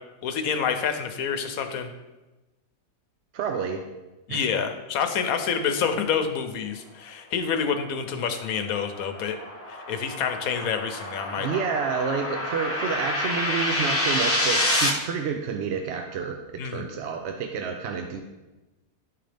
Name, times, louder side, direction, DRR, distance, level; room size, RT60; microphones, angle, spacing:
voice 1, 0.2-1.9 4.3-9.4 9.7-11.6 16.6-16.9, left 7 dB, 85° left, 7 dB, 1.1 m, -28 dB
voice 2, 3.3-3.8 4.3-4.4 11.4-18.2, right 6 dB, 65° right, 4 dB, 0.7 m, -29 dB
sound 1, 8.0-14.9, left 1 dB, 10° left, 0.8 m, -28 dB
11.0 x 3.8 x 3.4 m, 1.1 s
omnidirectional pair, 1.5 m